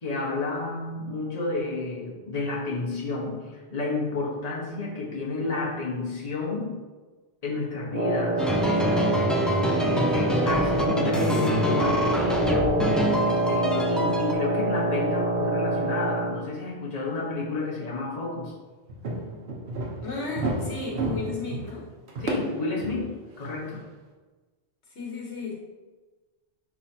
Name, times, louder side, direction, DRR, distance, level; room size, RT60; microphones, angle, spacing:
voice 1, 0.0-6.8 7.4-9.2 9.8-18.5 22.2-23.8, left 3 dB, 35° left, -4 dB, 1.3 m, -30 dB
Wind instrument woodwind instrument, 7.9-16.5, right 2 dB, 50° right, 0.9 m, -26 dB
sound 1, 8.4-14.3, equal, ahead, 0.4 m, -26 dB
sound 2, 18.9-23.7, right 2 dB, 70° right, 1.2 m, -32 dB
voice 2, 20.0-21.8 24.9-25.5, left 4 dB, 80° left, -3 dB, 1.4 m, -34 dB
10.0 x 3.6 x 2.8 m, 1.3 s
omnidirectional pair, 1.1 m